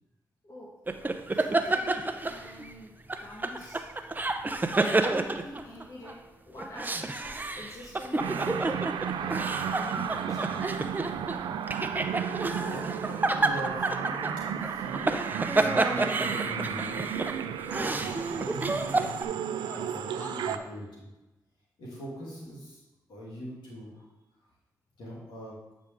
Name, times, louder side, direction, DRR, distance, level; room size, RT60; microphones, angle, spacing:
sound 1, 0.9-2.7 3.1-6.1 6.6-19.2, right 2 dB, 25° right, 0.6 m, -29 dB
voice 1, 1.3-2.9 3.2-3.8 4.6-11.0, left 1 dB, 45° left, -2 dB, 1.3 m, -46 dB
sound 2, 8.2-20.6, right 8 dB, 80° right, 0.4 m, -33 dB
voice 2, 12.4-15.1 15.6-17.1 17.5-21.1 21.8-22.8 23.1-24.0 25.0-25.5, equal, 75° left, -6 dB, 2.8 m, -42 dB
Female speech woman speaking / Yell, 15.9-17.2 17.7-19.3 19.6-20.7, left 1 dB, 25° left, 1.0 m, -47 dB
8.5 x 5.2 x 3.6 m, 1.0 s
supercardioid pair, 50°, 8 cm